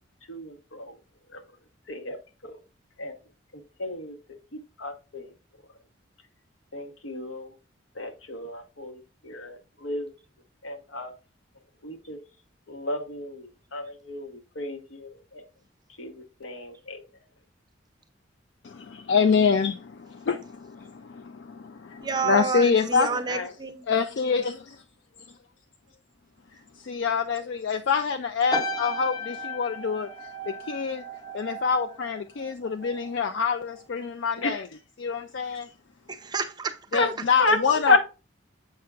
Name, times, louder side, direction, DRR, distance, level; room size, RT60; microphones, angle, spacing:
voice 1, 0.3-0.9 1.3-1.4 1.9-2.2 2.4-2.6 3.0-3.2 3.8-4.1 4.5-5.3 6.7-7.5 8.0-10.1 10.6-11.1 11.8-12.2 12.7-15.4 16.0-17.0 23.3-23.5 34.4-34.6 36.9-37.1 37.4-37.6 37.9-38.0, left 2 dB, 80° left, 1.0 m, -31 dB
voice 2, 18.6-23.1 23.9-24.8 25.3-25.4 26.5-31.0 31.3-34.7 35.0-35.7 36.9-38.0, left 5 dB, 60° left, 0.4 m, -26 dB
voice 3, 22.0-23.9 36.1-36.7, right 4 dB, 20° right, 0.5 m, -29 dB
sound 1, 28.5-33.1 33.4-33.8, right 1 dB, 20° left, 0.8 m, -35 dB
7.6 x 5.7 x 2.4 m
head